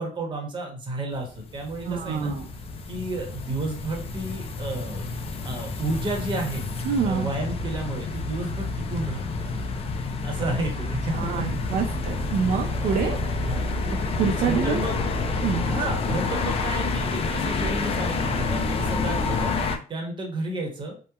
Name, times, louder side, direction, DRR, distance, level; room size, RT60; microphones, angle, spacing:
voice 1, 0.0-2.3 2.9-5.1 5.4-6.6 7.0-9.5 10.2-11.4 11.9-12.0 12.9-13.1 13.5-13.7 14.4-15.0 15.7-21.0, right 2 dB, 30° right, 1 dB, 0.8 m, -32 dB
sound 1, 1.1-19.8, left 3 dB, 35° left, 0.4 m, -28 dB
voice 2, 1.8-2.5 6.8-7.3 11.1-13.2 14.2-14.8 15.4-15.7, right 6 dB, 60° right, 2 dB, 0.4 m, -26 dB
2.8 x 2.1 x 2.2 m, 0.39 s
cardioid pair, 110°, 17 cm